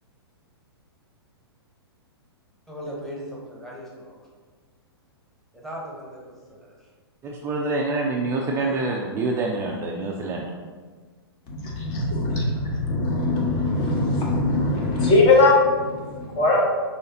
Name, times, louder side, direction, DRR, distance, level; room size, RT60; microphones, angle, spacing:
voice 1, 2.7-4.0 5.6-6.2 6.5-6.6 8.6-8.8, equal, ahead, -5 dB, 1.1 m, -37 dB
voice 2, 7.2-10.5, right 3 dB, 20° right, -1 dB, 0.4 m, -26 dB
voice 3, 11.5-16.6, left 2 dB, 35° left, -2 dB, 1.1 m, -21 dB
5.2 x 3.4 x 2.8 m, 1.4 s
hypercardioid pair, 115°, 13 cm